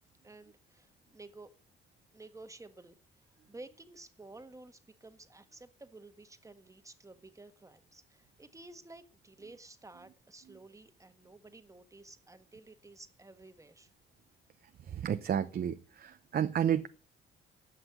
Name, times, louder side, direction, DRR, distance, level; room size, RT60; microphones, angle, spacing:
voice 1, 0.2-1.5 2.1-3.0 3.5-13.9, right 2 dB, 15° right, 1.6 m, -53 dB
voice 2, 14.8-16.9, right 9 dB, 50° right, 0.8 m, -31 dB
15.5 x 5.8 x 9.6 m
cardioid pair, 90°, 20 cm